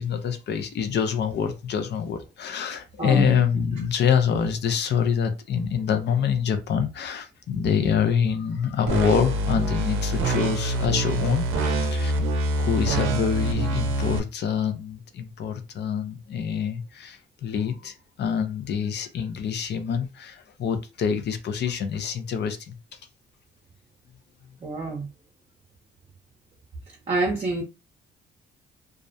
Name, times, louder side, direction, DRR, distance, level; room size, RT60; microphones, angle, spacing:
voice 1, 0.0-12.1 12.5-23.0, left 7 dB, 60° left, 0.5 m, -26 dB
voice 2, 3.0-3.4 24.6-25.1 27.1-27.6, right 3 dB, 30° right, 0.7 m, -26 dB
sound 1, 8.9-14.2, right 1 dB, 85° right, 0.5 m, -25 dB
2.3 x 2.0 x 2.6 m
cardioid pair, 90°, 20 cm